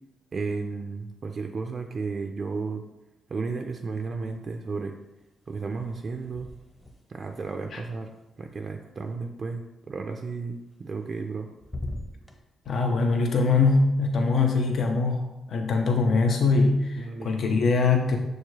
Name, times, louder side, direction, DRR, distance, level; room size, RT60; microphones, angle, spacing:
voice 1, 0.3-2.8 3.3-4.9 5.5-6.5 7.1-8.1 8.4-11.5 17.0-17.3, right 4 dB, 50° right, 4 dB, 0.3 m, -33 dB
sound 1, 4.0-4.7 5.0-9.1 10.7-11.3 11.6-12.4, left 1 dB, 25° left, 0.9 m, -43 dB
voice 2, 12.7-15.2 15.5-18.2, left 4 dB, 65° left, 3 dB, 0.4 m, -22 dB
6.3 x 2.4 x 3.1 m, 0.98 s
supercardioid pair, 50°, 0 cm